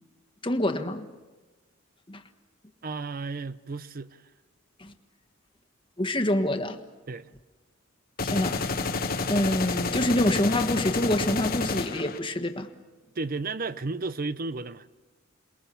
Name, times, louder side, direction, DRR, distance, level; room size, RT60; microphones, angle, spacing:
voice 1, 0.4-1.1 2.1-2.2 4.8-4.9 6.0-6.8 8.2-8.7 9.3-12.7, left 1 dB, 25° left, 1.4 m, -26 dB
voice 2, 2.8-4.2 7.1-7.3 13.2-14.9, right 3 dB, 45° right, 0.7 m, -33 dB
sound 1, 8.2-12.2, left 3 dB, 45° left, 1.2 m, -29 dB
28.0 x 21.5 x 7.0 m
head